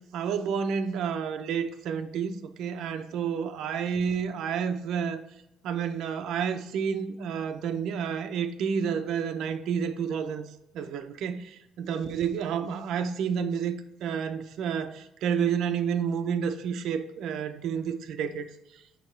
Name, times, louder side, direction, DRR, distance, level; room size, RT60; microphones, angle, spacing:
voice 1, 0.1-5.2 5.6-10.5 10.7-13.8 14.0-18.5, right 7 dB, 60° right, 0.5 m, -30 dB
6.8 x 5.3 x 3.2 m
cardioid pair, 165°, 0 cm